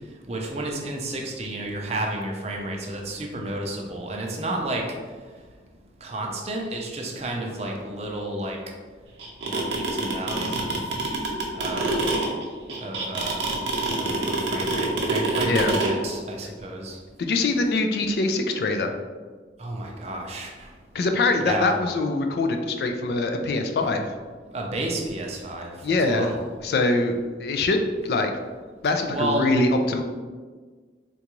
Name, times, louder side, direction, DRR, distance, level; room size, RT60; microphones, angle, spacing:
voice 1, 0.3-4.8 6.0-8.6 9.4-10.7 11.6-12.0 12.8-13.4 14.0-17.0 19.6-20.5 21.5-21.7 24.5-26.4 29.1-29.5, right 1 dB, 35° right, 0 dB, 0.5 m, -31 dB
sound 1, 9.2-15.9, right 3 dB, 80° right, 0.6 m, -25 dB
voice 2, 17.2-18.9 20.9-24.1 25.8-28.3 28.8-30.0, left 2 dB, 60° left, 5 dB, 0.3 m, -23 dB
3.7 x 2.3 x 2.9 m, 1.5 s
head